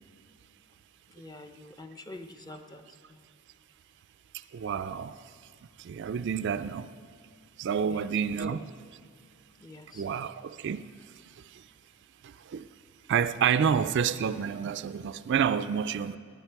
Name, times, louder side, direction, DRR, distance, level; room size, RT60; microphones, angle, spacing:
voice 1, 1.1-2.8 7.9-8.0 9.6-10.0, left 2 dB, 20° left, 0.6 m, -46 dB
voice 2, 4.5-5.2 5.8-6.9 7.6-8.7 9.9-10.9 11.5-11.6 12.2-12.7 13.1-16.2, right 7 dB, 55° right, 0.3 m, -29 dB
19.0 x 9.7 x 4.5 m
head